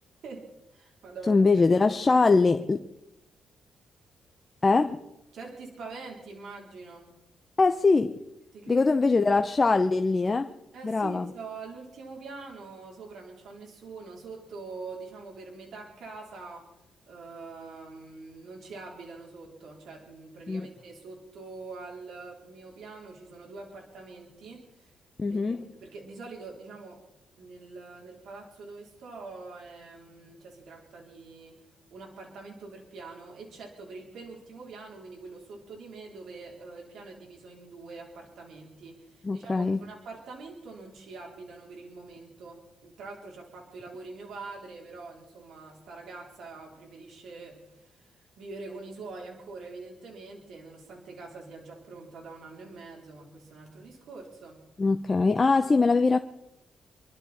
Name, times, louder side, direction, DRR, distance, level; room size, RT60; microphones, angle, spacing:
voice 1, 0.2-1.4 2.1-2.3 5.3-7.1 8.5-9.0 10.7-16.7 17.1-24.9 25.3-27.0 27.4-31.6 31.9-54.6, right 3 dB, 75° right, -1 dB, 3.9 m, -44 dB
voice 2, 1.3-2.8 4.6-5.0 7.6-8.2 8.7-10.5 10.8-11.3 20.5-20.7 25.2-25.7 39.2-39.8 54.8-56.2, left 3 dB, 25° left, 6 dB, 0.7 m, -22 dB
27.5 x 12.0 x 4.4 m, 0.89 s
cardioid pair, 130°, 0 cm